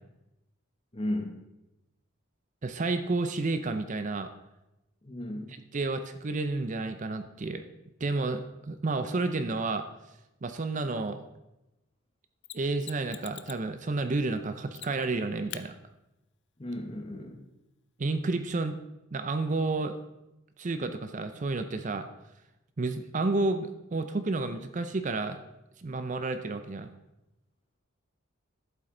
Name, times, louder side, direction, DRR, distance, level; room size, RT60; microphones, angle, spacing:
voice 1, 0.9-1.4 5.0-5.5 16.6-17.4, left 1 dB, 25° left, 4 dB, 1.1 m, -34 dB
voice 2, 2.6-4.3 5.7-7.6 8.0-9.8 10.4-11.2 12.5-15.7 18.0-18.8 19.1-20.0 20.6-22.1 22.8-25.4 25.8-26.9, right 3 dB, 35° right, 9 dB, 0.5 m, -30 dB
Mechanisms, 12.4-13.7 14.7-15.1 15.5-15.7 18.4-18.5, left 13 dB, 55° left, 0.5 m, -43 dB
12.5 x 7.7 x 3.8 m, 0.94 s
head